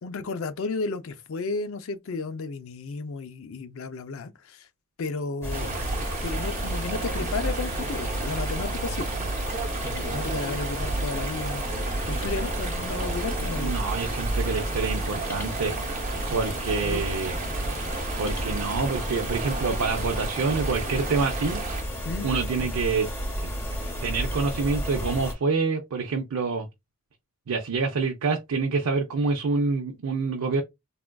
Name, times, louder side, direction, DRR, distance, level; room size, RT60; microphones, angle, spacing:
voice 1, 0.0-4.7 5.0-5.9 6.2-9.2 9.8-11.6 12.1-13.8 16.8-17.0 22.0-22.3, left 4 dB, 65° left, 0.4 m, -33 dB
sound 1, 5.4-25.3, equal, 10° left, 0.7 m, -31 dB
Chatter / Stream, 5.5-21.8, right 4 dB, 35° right, 0.6 m, -35 dB
voice 2, 13.6-15.7 16.3-17.4 18.2-21.6 22.2-23.1 23.4-23.5 24.0-26.7 27.5-30.6, right 4 dB, 85° right, 0.5 m, -27 dB
3.5 x 2.4 x 2.2 m
head